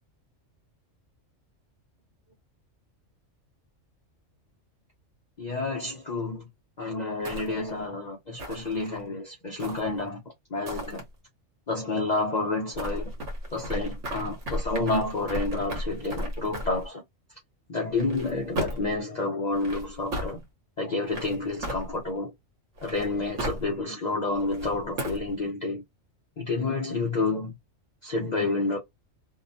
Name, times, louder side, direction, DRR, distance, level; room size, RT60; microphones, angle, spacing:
voice 1, 5.4-6.5 6.8-10.2 10.5-11.0 11.7-13.1 13.5-17.0 17.7-20.4 20.8-22.3 22.8-25.8 26.4-27.5 28.0-28.8, left 3 dB, 45° left, 0.6 m, -29 dB
sound 1, 7.2-7.8 8.4-9.0 9.6-10.1 10.7-11.0 12.7-16.9 17.9-19.0 19.5-20.3 21.1-22.2 22.8-23.7 24.4-25.3, equal, 65° right, 1.3 m, -35 dB
2.7 x 2.0 x 2.6 m
omnidirectional pair, 1.3 m